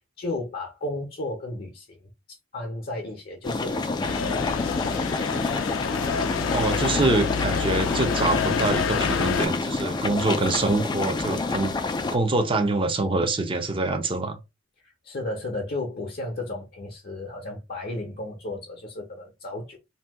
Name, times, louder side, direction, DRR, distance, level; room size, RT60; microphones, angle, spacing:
voice 1, 0.0-2.1 2.5-5.4 14.8-19.8, left 2 dB, 50° left, 0.7 m, -34 dB
sound 1, 3.4-12.2, left 3 dB, 20° left, 0.3 m, -28 dB
sound 2, 4.0-9.5, left 6 dB, 85° left, 0.4 m, -28 dB
voice 2, 6.5-11.7 12.1-14.4, right 2 dB, 25° right, 0.5 m, -25 dB
2.7 x 2.3 x 3.4 m
head